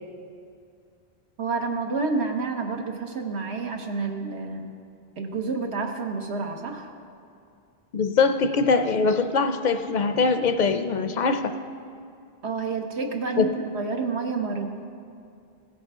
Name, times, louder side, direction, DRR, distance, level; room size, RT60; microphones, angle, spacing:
voice 1, 1.4-4.7 5.2-6.9 12.4-14.7, right 4 dB, 85° right, 3 dB, 1.3 m, -29 dB
voice 2, 7.9-11.5 13.4-13.5, left 4 dB, 55° left, 8 dB, 0.5 m, -22 dB
16.5 x 8.5 x 3.6 m, 2.4 s
omnidirectional pair, 1.1 m